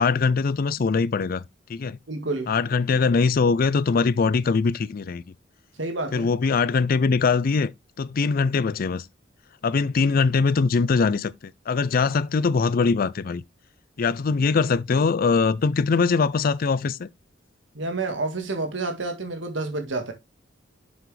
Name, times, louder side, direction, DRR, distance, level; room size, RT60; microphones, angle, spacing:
voice 1, 0.0-1.4 1.7-2.0 2.5-5.2 6.1-7.7 8.0-9.1 9.6-11.3 11.7-13.4 14.0-17.1, left 4 dB, 50° left, 0.4 m, -22 dB
voice 2, 2.1-2.5 5.8-6.3 17.7-20.1, right 3 dB, 80° right, 1.8 m, -29 dB
7.2 x 6.0 x 3.3 m
head